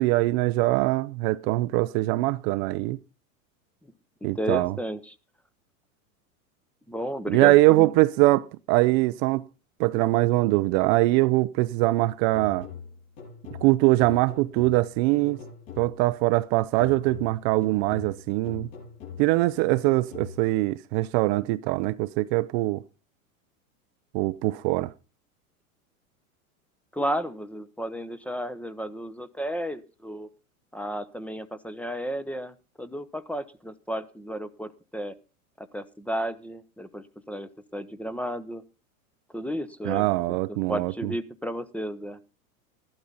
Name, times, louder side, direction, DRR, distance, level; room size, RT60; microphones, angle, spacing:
voice 1, 0.0-3.0 4.2-4.7 7.3-9.4 9.8-12.7 13.6-15.4 15.8-18.7 19.2-22.8 24.1-24.9 39.8-41.1, right 19 dB, 45° right, 0.6 m, -22 dB
voice 2, 4.3-5.1 6.9-7.9 26.9-30.3 30.7-35.1 35.6-38.6 39.3-42.2, equal, 5° left, 0.8 m, -33 dB
sound 1, 12.3-16.2 16.8-20.7, left 6 dB, 60° left, 7.0 m, -43 dB
14.5 x 12.0 x 3.9 m
hypercardioid pair, 105°, 43 cm